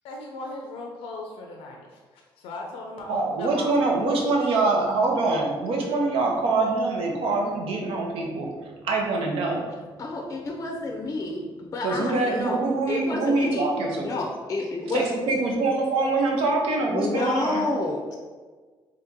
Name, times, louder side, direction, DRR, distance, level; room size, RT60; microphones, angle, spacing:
voice 1, 0.0-3.7 4.1-4.2, left 2 dB, 90° left, 0 dB, 0.5 m, -38 dB
voice 2, 3.1-9.7 11.8-14.1 14.9-17.6, right 3 dB, 80° right, 0 dB, 0.8 m, -24 dB
voice 3, 10.0-12.6 12.9-13.7 14.0-15.0 16.9-18.2, left 2 dB, 35° left, 1 dB, 0.5 m, -29 dB
3.6 x 2.8 x 3.7 m, 1.4 s
cardioid pair, 100°, 10 cm